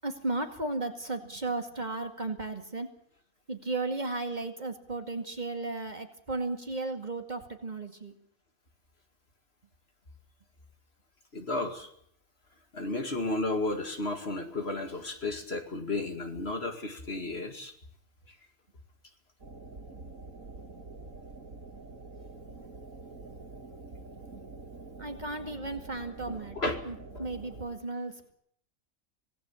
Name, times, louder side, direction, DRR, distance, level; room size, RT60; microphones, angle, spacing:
voice 1, 0.0-2.9 3.5-8.1 25.0-26.6 26.9-28.3, right 2 dB, 35° right, 5 dB, 2.3 m, -35 dB
voice 2, 11.3-11.9 12.7-17.7 26.3-26.8 27.2-27.3, left 2 dB, 50° left, 5 dB, 2.5 m, -33 dB
sound 1, 19.4-27.7, right 3 dB, 75° right, 2.8 m, -46 dB
26.0 x 18.0 x 7.2 m, 0.67 s
omnidirectional pair, 1.4 m